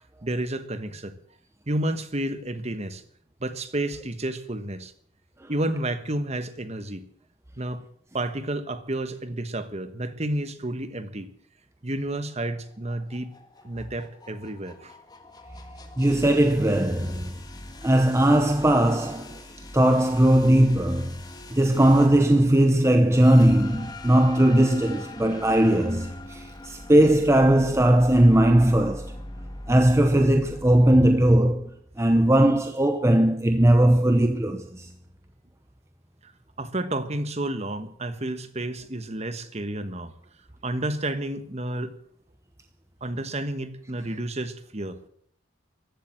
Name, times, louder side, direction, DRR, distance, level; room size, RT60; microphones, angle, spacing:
voice 1, 0.2-1.2 1.7-3.0 3.4-4.9 5.5-7.0 7.6-7.8 8.1-11.3 11.8-13.3 13.6-14.9 36.2-36.3 36.6-40.1 40.6-41.9 43.0-45.1, right 1 dB, 30° right, 1.2 m, -31 dB
sound 1, 12.5-31.3, left 1 dB, 20° left, 1.6 m, -42 dB
voice 2, 16.0-17.4 17.8-19.4 19.7-21.2 21.5-29.1 29.7-34.9, right 1 dB, 15° right, 0.7 m, -19 dB
15.0 x 12.0 x 7.8 m
head